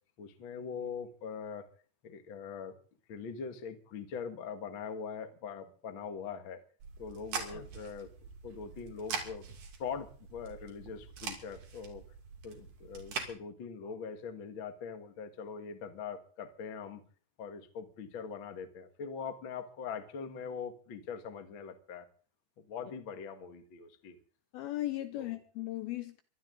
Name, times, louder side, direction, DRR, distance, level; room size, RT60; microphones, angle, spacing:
voice 1, 0.2-1.7 2.0-2.7 3.1-6.6 7.0-8.1 8.4-9.4 9.8-12.0 12.4-17.0 17.4-22.1 22.6-24.2 25.2-25.4, left 6 dB, 50° left, 1.5 m, -42 dB
sound 1, 6.8-13.3, right 5 dB, 50° right, 3.8 m, -43 dB
voice 2, 24.5-26.2, left 15 dB, 75° left, 2.4 m, -37 dB
23.5 x 12.5 x 3.9 m
omnidirectional pair, 5.0 m